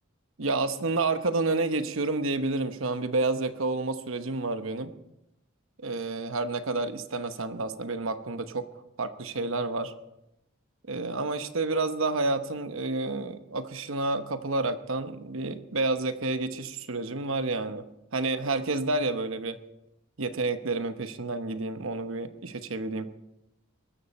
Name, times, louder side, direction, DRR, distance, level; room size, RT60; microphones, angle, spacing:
voice 1, 0.4-4.9 5.8-9.9 10.9-17.8 18.1-19.6 20.2-23.1, right 3 dB, 65° right, 10 dB, 1.0 m, -29 dB
21.5 x 13.0 x 4.3 m, 0.89 s
head